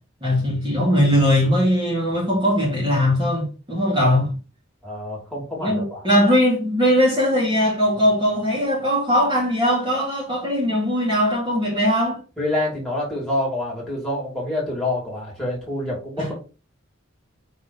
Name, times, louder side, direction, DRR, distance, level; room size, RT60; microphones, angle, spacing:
voice 1, 0.2-4.3 5.6-12.2 16.2-16.3, equal, 25° right, 2.6 m, -20 dB
voice 2, 4.8-6.1 12.4-16.3, left 1 dB, ahead, 3.1 m, -27 dB
5.6 x 4.3 x 4.2 m
head